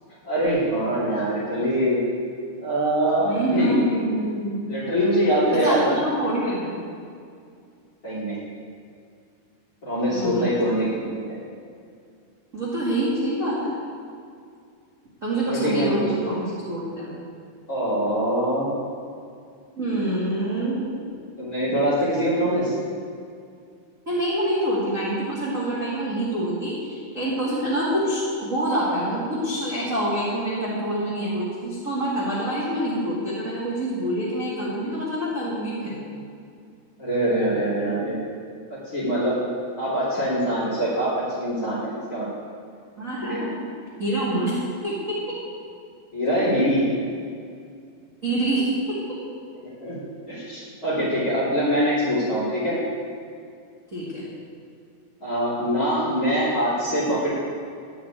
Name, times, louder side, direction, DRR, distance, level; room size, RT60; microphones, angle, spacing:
voice 1, 0.2-2.0 2.6-4.0 4.7-5.9 8.0-8.4 9.8-11.4 15.4-16.1 17.7-18.8 21.4-22.7 37.0-38.2 38.7-39.4 39.8-42.3 43.2-43.5 46.1-46.8 49.6-50.0 50.3-52.8 55.2-57.3, equal, 25° left, -13 dB, 2.6 m, -23 dB
voice 2, 3.2-4.7 5.5-6.8 10.1-10.9 12.5-13.7 15.2-17.2 19.8-20.8 24.0-36.0 43.0-43.5 44.0-44.6 44.8-45.2 48.2-48.7 53.9-54.2, right 1 dB, 40° right, -8 dB, 1.2 m, -26 dB
12.0 x 5.1 x 8.8 m, 2.3 s
omnidirectional pair, 5.1 m